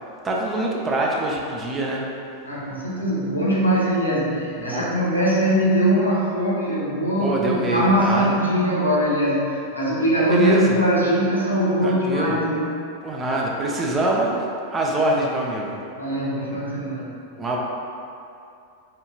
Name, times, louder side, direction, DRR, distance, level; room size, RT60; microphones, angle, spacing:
voice 1, 0.2-2.0 4.6-4.9 7.2-8.4 10.3-10.8 11.8-12.4 13.0-15.8 17.4-17.6, right 1 dB, 20° right, -2 dB, 0.4 m, -24 dB
voice 2, 2.4-12.8 16.0-17.1, equal, 85° left, -7 dB, 0.7 m, -21 dB
3.5 x 2.7 x 2.2 m, 2.6 s
figure-of-eight pair, 90°, 0 cm